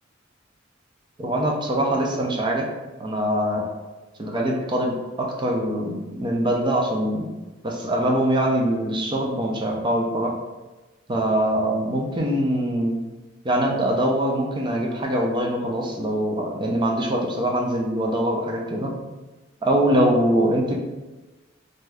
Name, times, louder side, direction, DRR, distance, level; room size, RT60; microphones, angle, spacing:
voice 1, 1.2-2.7 3.0-3.7 4.2-7.3 7.6-10.4 11.1-13.0 13.4-18.9 19.6-20.7, right 1 dB, 25° right, -1 dB, 0.4 m, -23 dB
2.6 x 2.3 x 3.2 m, 1.2 s
head